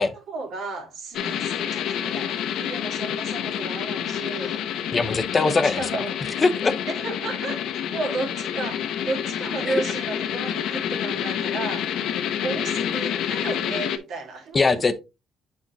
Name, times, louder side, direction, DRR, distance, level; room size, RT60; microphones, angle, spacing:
voice 1, 0.0-5.0 5.4-6.1 6.9-11.9 12.4-14.8, right 3 dB, 70° right, 2.0 m, -33 dB
sound 1, 1.1-14.0, left 9 dB, 75° left, 0.7 m, -28 dB
voice 2, 4.9-5.8 6.4-6.7 9.6-9.8 14.5-15.0, left 4 dB, 30° left, 0.6 m, -21 dB
8.1 x 4.4 x 2.9 m
cardioid pair, 110°, 0 cm